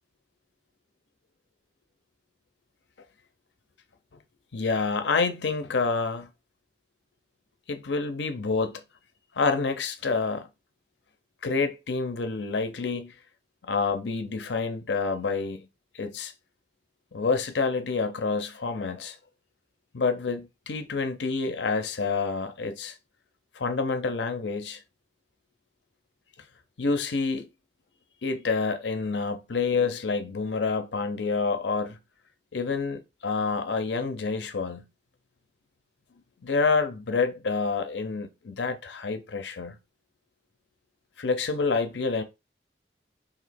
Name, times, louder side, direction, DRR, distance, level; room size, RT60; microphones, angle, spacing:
voice 1, 4.5-6.3 7.7-8.8 9.4-10.5 11.4-13.1 13.6-15.7 15.9-16.3 17.1-19.2 19.9-22.9 23.5-24.8 26.8-27.5 28.2-32.0 32.5-34.9 36.4-39.8 41.2-42.2, left 4 dB, 85° left, 0.6 m, -28 dB
3.0 x 2.7 x 4.2 m
head